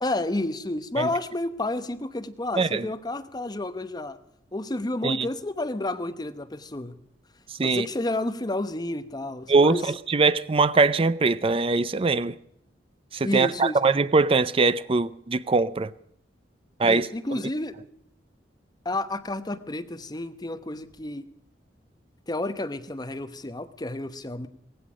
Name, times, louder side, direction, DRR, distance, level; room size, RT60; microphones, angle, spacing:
voice 1, 0.0-4.2 4.5-7.0 7.6-9.9 13.2-13.8 16.8-17.8 18.8-21.3 22.3-24.5, left 2 dB, 25° left, 0.9 m, -30 dB
voice 2, 2.6-2.9 5.0-5.3 7.6-7.9 9.5-12.3 13.1-15.9 16.8-17.1, right 3 dB, 30° right, 0.5 m, -22 dB
17.5 x 16.0 x 5.0 m
head